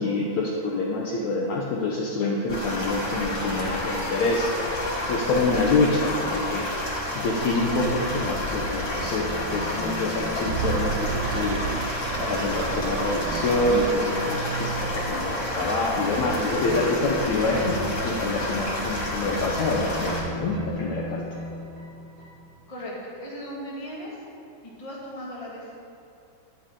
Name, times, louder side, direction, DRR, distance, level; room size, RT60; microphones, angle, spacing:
voice 1, 0.0-4.8 5.1-21.2, left 2 dB, 80° left, -3 dB, 1.6 m, -26 dB
sound 1, 2.5-20.2, left 1 dB, 40° left, 1.0 m, -30 dB
sound 2, 7.2-22.7, right 3 dB, 60° right, 2.9 m, -37 dB
sound 3, 10.4-13.9, right 7 dB, 90° right, 2.6 m, -32 dB
voice 2, 22.7-24.2 24.6-25.8, equal, 15° left, -7 dB, 1.5 m, -37 dB
11.0 x 10.0 x 3.8 m, 2.7 s
omnidirectional pair, 4.5 m